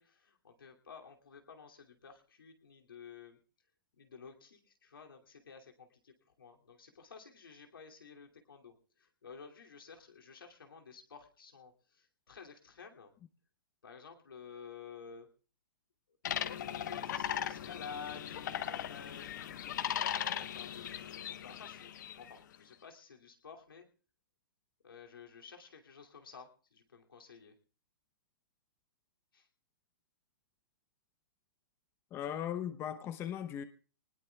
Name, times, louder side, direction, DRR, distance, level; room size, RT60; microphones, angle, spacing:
voice 1, 0.0-3.4 4.0-13.1 13.8-15.3 16.4-19.4 19.9-23.9 24.8-27.5 29.3-29.5, left 6 dB, 90° left, 2 dB, 2.6 m, -52 dB
sound 1, 16.2-22.3, left 10 dB, 60° left, 1.0 m, -38 dB
voice 2, 32.1-33.6, left 10 dB, 20° left, 10 dB, 0.7 m, -38 dB
24.5 x 19.5 x 2.3 m, 0.38 s
hypercardioid pair, 140°, 11 cm